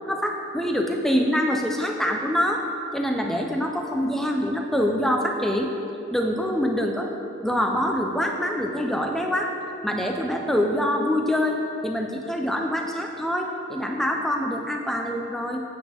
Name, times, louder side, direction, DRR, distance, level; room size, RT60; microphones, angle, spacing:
voice 1, 0.1-2.6 2.9-5.7 6.1-7.1 7.4-9.5 9.8-15.6, equal, ahead, 2 dB, 0.5 m, -25 dB
8.4 x 8.0 x 3.5 m, 2.7 s
head